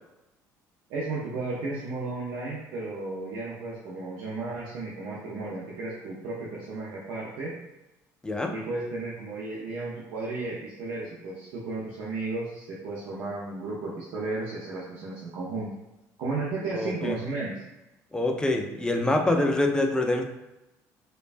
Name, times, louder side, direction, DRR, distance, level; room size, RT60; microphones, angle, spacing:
voice 1, 0.9-7.6 8.5-15.7 16.2-17.6, right 3 dB, 75° right, -5 dB, 0.6 m, -34 dB
voice 2, 16.7-17.2 18.1-20.2, left 2 dB, 10° left, 3 dB, 0.4 m, -25 dB
3.1 x 2.2 x 2.4 m, 0.98 s
supercardioid pair, 80°, 7 cm